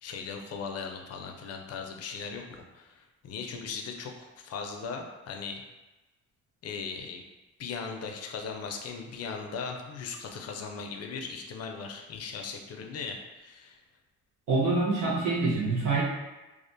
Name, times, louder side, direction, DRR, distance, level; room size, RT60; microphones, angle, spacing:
voice 1, 0.0-5.6 6.6-7.2 7.6-13.8, left 5 dB, 55° left, 3 dB, 0.4 m, -38 dB
voice 2, 14.5-16.0, right 3 dB, 85° right, -6 dB, 0.7 m, -26 dB
2.4 x 2.1 x 2.6 m, 1.1 s
cardioid pair, 90°, 30 cm